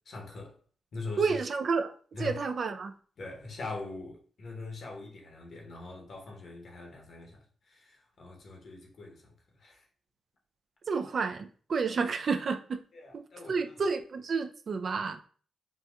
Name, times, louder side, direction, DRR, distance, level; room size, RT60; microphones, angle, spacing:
voice 1, 0.1-0.5 0.9-1.4 2.1-2.4 3.2-7.4 7.7-9.3 9.6-9.8 13.0-13.6, left 3 dB, 65° left, 1.0 m, -42 dB
voice 2, 1.2-1.9 2.2-2.9 10.9-12.8 13.1-15.2, right 5 dB, 55° right, 0.3 m, -30 dB
4.0 x 2.3 x 2.3 m
supercardioid pair, 55°, 0 cm